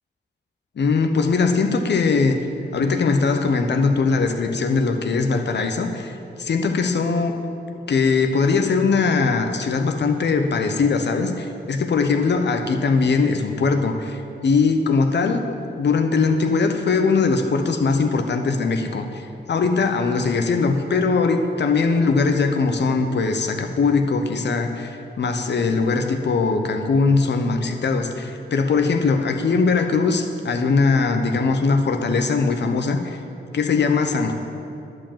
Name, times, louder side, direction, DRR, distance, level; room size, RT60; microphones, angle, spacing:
voice 1, 0.8-2.4 2.7-6.1 6.4-7.3 7.9-33.2 33.5-34.3, left 4 dB, 70° left, 5 dB, 0.9 m, -20 dB
11.0 x 5.0 x 7.4 m, 2.6 s
cardioid pair, 75°, 19 cm